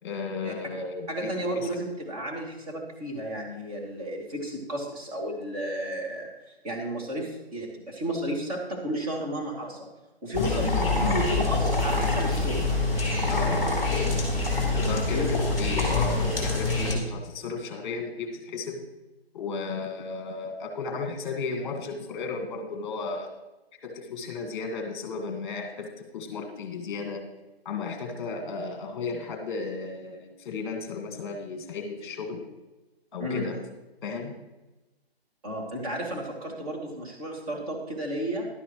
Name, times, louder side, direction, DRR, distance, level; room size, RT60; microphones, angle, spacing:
voice 1, 0.0-1.3 1.5-1.7 10.3-11.2 13.3-13.8 14.7-18.8 19.3-23.3 23.8-27.2 27.6-32.5 33.1-33.6 34.0-34.4, left 4 dB, 25° left, 4 dB, 1.7 m, -34 dB
voice 2, 1.1-9.8 10.2-12.7 14.8-15.4 33.2-33.5 35.4-38.5, equal, 35° right, -2 dB, 2.7 m, -33 dB
sound 1, 10.3-16.9, left 2 dB, 10° right, 2.5 m, -25 dB
11.5 x 11.0 x 3.1 m, 1.1 s
hypercardioid pair, 155°, 32 cm